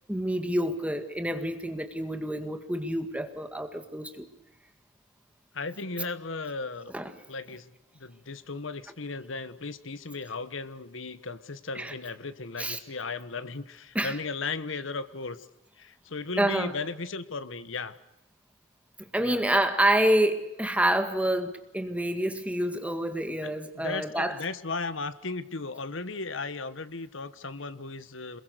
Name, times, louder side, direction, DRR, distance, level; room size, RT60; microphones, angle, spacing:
voice 1, 0.1-4.3 6.9-7.0 11.8-11.9 12.6-12.8 14.0-14.1 16.4-16.7 19.1-24.4, right 1 dB, 5° right, 8 dB, 2.0 m, -27 dB
voice 2, 5.5-6.9 7.3-7.7 7.9-15.5 15.8-18.0 19.2-19.4 23.4-28.4, left 3 dB, 75° left, 13 dB, 1.3 m, -36 dB
27.5 x 22.0 x 6.7 m, 0.90 s
head